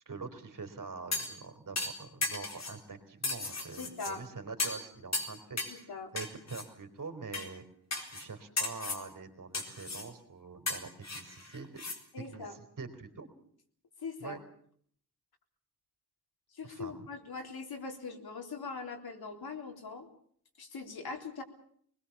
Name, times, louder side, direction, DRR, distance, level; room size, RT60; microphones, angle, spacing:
voice 1, 0.1-7.6 8.1-11.8 12.3-13.3 14.2-14.4 16.7-17.1, right 4 dB, 55° right, 7 dB, 3.6 m, -45 dB
sound 1, 1.1-1.4 1.8-2.8 3.2-4.1 4.6-4.9 5.1-5.8 6.2-6.6 7.3-7.5 7.9-8.3 8.6-9.0 9.5-10.1 10.7-12.0 12.3-12.4, left 3 dB, 45° left, 4.1 m, -35 dB
voice 2, 3.8-4.2 5.7-6.1 12.1-12.5 14.0-14.4 16.5-20.1 20.6-21.4, left 4 dB, 75° left, 3 dB, 3.8 m, -41 dB
25.0 x 20.5 x 7.1 m, 0.62 s
wide cardioid pair, 135°, 38 cm